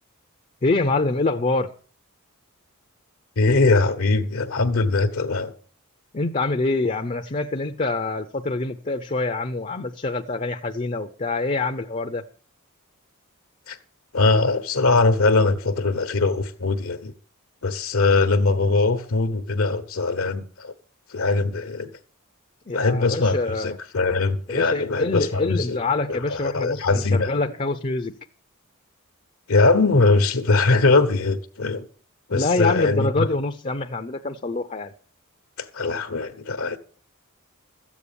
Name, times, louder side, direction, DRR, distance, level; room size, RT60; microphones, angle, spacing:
voice 1, 0.6-1.7 6.1-12.3 22.7-23.8 24.5-28.1 32.3-34.9, left 3 dB, 35° left, 0.7 m, -25 dB
voice 2, 3.4-5.5 13.7-13.8 14.1-17.1 17.6-20.7 21.1-21.9 22.7-25.8 26.1-27.3 29.5-31.9 32.3-33.3 35.6-36.8, left 3 dB, 70° left, 1.0 m, -21 dB
13.5 x 8.4 x 7.0 m
head